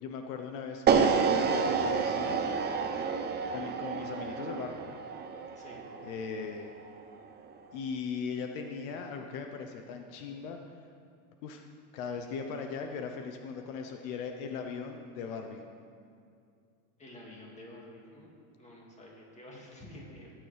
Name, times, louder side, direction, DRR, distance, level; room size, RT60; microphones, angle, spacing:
voice 1, 0.0-2.4 3.5-5.0 6.0-6.7 7.7-10.6 11.4-11.7 11.9-15.6, left 5 dB, 65° left, 4 dB, 1.0 m, -39 dB
sound 1, 0.9-7.0, right 6 dB, 25° right, 0.7 m, -29 dB
voice 2, 17.0-20.3, left 1 dB, 15° left, -2 dB, 2.3 m, -50 dB
16.5 x 9.2 x 3.4 m, 2.4 s
supercardioid pair, 125°, 43 cm